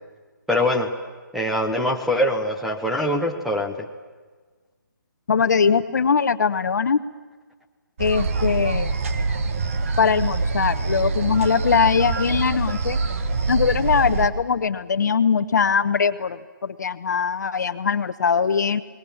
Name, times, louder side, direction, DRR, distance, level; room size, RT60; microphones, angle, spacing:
voice 1, 0.5-0.9 1.3-3.9, left 1 dB, ahead, 1 dB, 1.0 m, -23 dB
voice 2, 5.3-7.0 8.0-8.9 10.0-13.0 13.5-18.8, left 6 dB, 60° left, 11 dB, 1.1 m, -21 dB
sound 1, 8.0-14.3, right 3 dB, 40° right, 1.5 m, -25 dB
29.5 x 20.5 x 7.3 m, 1.4 s
hypercardioid pair, 165°, 11 cm